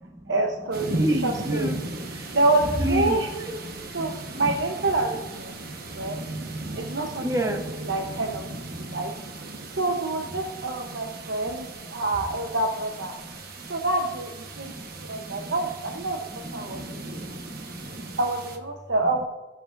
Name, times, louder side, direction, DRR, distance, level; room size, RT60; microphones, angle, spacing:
voice 1, 0.3-1.8 2.3-3.3 3.9-5.6 5.9-6.2 6.7-9.1 9.7-13.1 13.7-14.7 15.1-16.3 16.5-17.0 18.2-19.2, right 2 dB, 70° right, 2 dB, 0.8 m, -27 dB
sound 1, 0.7-18.6, right 2 dB, 55° right, 1.2 m, -37 dB
voice 2, 1.0-1.8 2.1-2.3 2.8-3.2 3.5-3.6 6.0-6.3 7.2-7.6 13.6-13.7 14.7-15.4 16.3-18.2, equal, 15° right, 5 dB, 0.9 m, -30 dB
18.5 x 7.7 x 2.6 m, 1.2 s
head